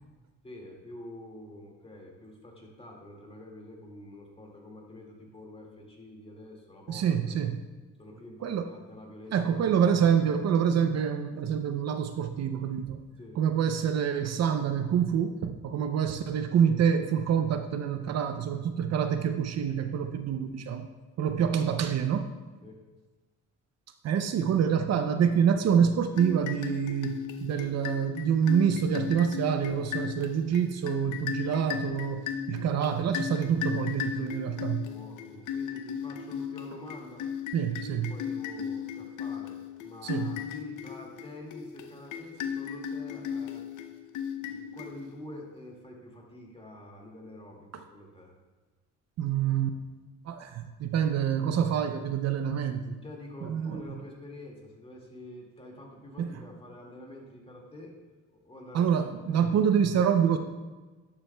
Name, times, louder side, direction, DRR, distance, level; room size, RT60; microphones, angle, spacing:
voice 1, 0.4-7.4 8.0-9.7 13.2-13.4 22.6-22.8 34.5-37.3 38.1-43.7 44.3-48.3 53.0-57.9 58.3-59.6, left 1 dB, 20° left, -1 dB, 2.0 m, -47 dB
voice 2, 6.9-7.7 8.4-8.7 9.3-13.0 13.4-20.9 21.2-22.3 24.0-34.8 37.5-38.1 40.0-40.3 47.7-47.8 49.2-49.8 50.2-53.0 53.4-53.8 56.2-56.3 58.7-60.4, right 8 dB, 60° right, 8 dB, 0.6 m, -26 dB
sound 1, 26.1-45.3, left 8 dB, 85° left, 0.7 m, -36 dB
11.0 x 7.3 x 2.2 m, 1.3 s
cardioid pair, 90°, 30 cm